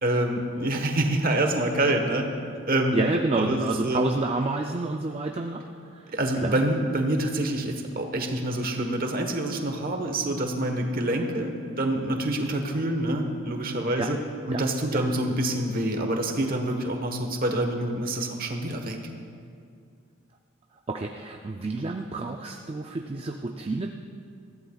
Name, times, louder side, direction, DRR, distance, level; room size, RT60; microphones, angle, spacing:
voice 1, 0.0-2.3 2.7-3.0 3.4-4.0 6.1-14.2 14.5-19.0, right 1 dB, 40° right, 4 dB, 1.2 m, -26 dB
voice 2, 2.9-6.6 14.0-14.1 14.5-14.6 14.9-15.0 20.9-23.9, right 2 dB, 25° right, 3 dB, 0.4 m, -29 dB
21.0 x 15.0 x 2.4 m, 2.3 s
head